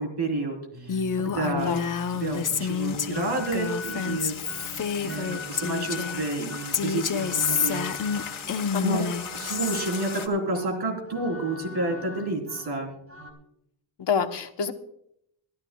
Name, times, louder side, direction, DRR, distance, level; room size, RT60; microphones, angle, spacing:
voice 1, 0.0-1.7 2.2-7.8 8.1-8.4 8.8-9.0 9.3-12.9, right 2 dB, 55° right, 3 dB, 3.8 m, -30 dB
sound 1, 0.7-13.3, left 2 dB, 30° right, 3.8 m, -42 dB
Female speech woman speaking, 0.9-6.3 6.7-9.8, left 7 dB, 45° left, 0.8 m, -29 dB
voice 2, 1.5-1.9 8.7-9.0 14.0-14.7, left 6 dB, 60° left, 6 dB, 1.2 m, -27 dB
sound 2, 1.6-10.3, left 8 dB, 90° left, 1.5 m, -40 dB
23.5 x 13.5 x 2.3 m, 0.75 s
wide cardioid pair, 145°, 46 cm